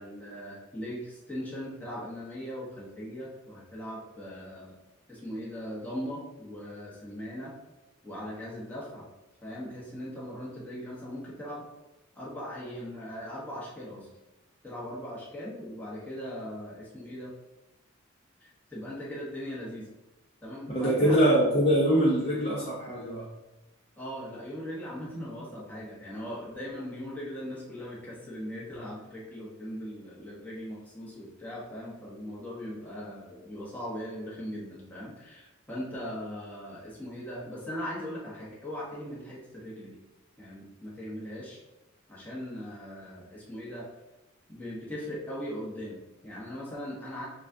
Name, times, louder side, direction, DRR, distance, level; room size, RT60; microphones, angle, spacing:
voice 1, 0.0-4.7 5.1-7.5 8.0-9.0 9.4-11.6 12.1-14.1 14.6-17.3 18.4-19.9 20.4-21.3 24.0-40.0 40.4-41.6 42.1-43.9 44.5-47.3, equal, 10° left, -6 dB, 1.0 m, -39 dB
voice 2, 20.7-23.3, equal, 30° left, -6 dB, 0.8 m, -23 dB
6.9 x 2.4 x 2.7 m, 1.0 s
head